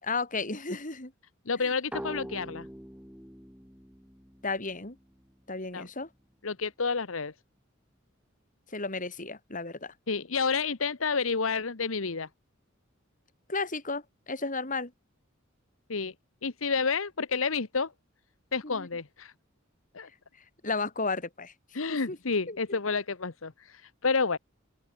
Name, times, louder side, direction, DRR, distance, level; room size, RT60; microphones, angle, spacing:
voice 1, 0.0-1.1 1.6-1.7 4.4-5.0 5.5-6.1 8.7-9.9 13.5-14.9 18.6-18.9 20.6-21.5 21.9-22.2 22.5-22.6, left 3 dB, 40° left, 5.1 m, -33 dB
voice 2, 1.5-2.7 5.7-5.9 6.4-7.3 10.1-12.3 15.9-16.1 16.4-17.9 18.5-19.3 19.9-20.1 21.7-24.4, left 4 dB, 80° left, 1.2 m, -30 dB
sound 1, 1.9-5.4, equal, 5° right, 4.7 m, -43 dB
open air
head